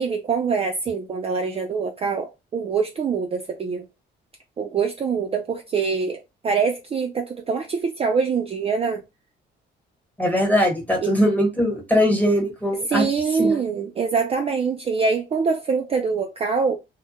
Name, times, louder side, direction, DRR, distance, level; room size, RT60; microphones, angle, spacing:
voice 1, 0.0-3.9 4.6-9.0 11.0-11.1 12.9-16.8, right 5 dB, 30° right, 0.3 m, -24 dB
voice 2, 10.2-13.0 13.3-13.6, equal, 10° left, 1.1 m, -21 dB
2.1 x 2.1 x 2.8 m
cardioid pair, 90°, 20 cm